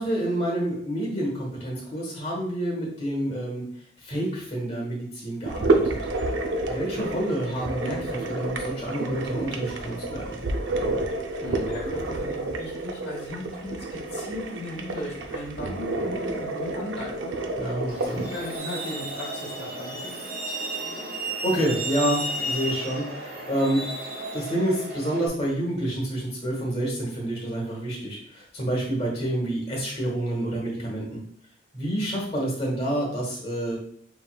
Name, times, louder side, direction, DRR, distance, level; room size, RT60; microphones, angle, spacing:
voice 1, 0.0-3.6 4.0-6.0 6.6-10.4 17.5-18.3 21.4-23.8 24.3-31.2 31.7-33.8, right 1 dB, 35° left, -3 dB, 1.1 m, -28 dB
sound 1, 5.5-18.6, right 2 dB, 80° right, 0.5 m, -29 dB
voice 2, 11.4-17.3 17.6-20.2, left 1 dB, 60° left, -4 dB, 1.0 m, -37 dB
Truck, 17.9-25.3, right 2 dB, 55° right, 1.1 m, -33 dB
5.0 x 3.1 x 2.3 m, 0.63 s
head